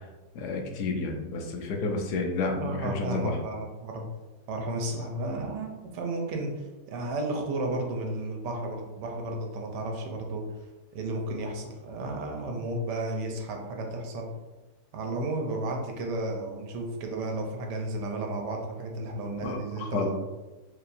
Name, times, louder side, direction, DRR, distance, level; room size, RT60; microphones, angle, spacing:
voice 1, 0.3-3.4 19.4-20.1, left 3 dB, 75° left, 3 dB, 1.1 m, -30 dB
voice 2, 2.5-4.0 4.5-10.4 10.9-14.3 14.9-20.1, right 2 dB, 85° right, 2 dB, 1.3 m, -33 dB
4.7 x 2.9 x 2.5 m, 1.1 s
omnidirectional pair, 1.8 m